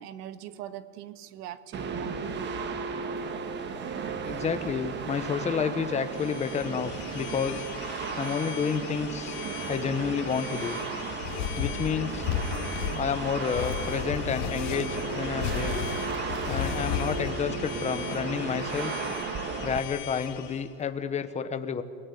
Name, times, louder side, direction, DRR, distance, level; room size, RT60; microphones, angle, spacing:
voice 1, 0.0-2.5, right 11 dB, 80° right, 13 dB, 1.6 m, -41 dB
sound 1, 1.7-19.8, right 5 dB, 25° right, 1.5 m, -35 dB
voice 2, 4.2-7.6 8.2-9.4 9.7-10.8 11.6-12.3 12.9-15.8 16.5-18.9 19.6-21.8, left 6 dB, 15° left, 10 dB, 1.0 m, -30 dB
sound 2, 5.9-20.7, left 10 dB, 40° left, 3.3 m, -41 dB
sound 3, 10.6-17.3, left 8 dB, 55° left, 2.9 m, -33 dB
29.5 x 18.0 x 9.7 m, 2.1 s
supercardioid pair, 165°, 46 cm